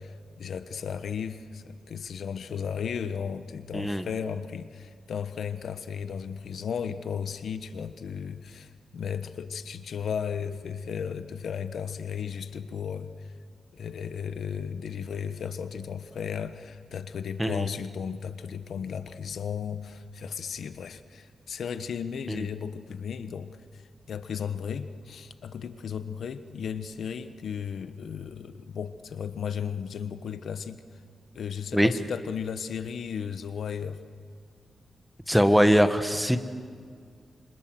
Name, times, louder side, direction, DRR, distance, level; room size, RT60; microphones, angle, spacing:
voice 1, 0.0-13.1 13.7-23.8 24.1-30.8 31.3-34.0 35.3-35.7 36.3-36.4, left 7 dB, 80° left, 11 dB, 1.2 m, -35 dB
voice 2, 3.7-4.1 17.4-17.7 22.3-22.5 31.7-31.9 35.3-36.4, equal, ahead, 9 dB, 1.3 m, -22 dB
27.0 x 26.0 x 7.8 m, 2.1 s
wide cardioid pair, 140°, 0 cm